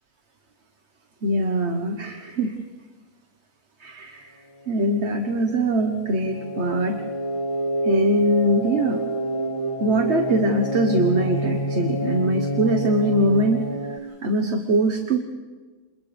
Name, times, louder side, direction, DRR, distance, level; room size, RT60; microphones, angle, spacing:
voice 1, 1.2-2.6 3.8-4.4 4.7-7.0 7.8-9.1 9.8-15.2, right 1 dB, 50° right, 4 dB, 1.5 m, -22 dB
sound 1, 4.5-14.0, equal, 20° left, 1.5 m, -28 dB
29.0 x 28.0 x 3.5 m, 1.3 s
omnidirectional pair, 1.6 m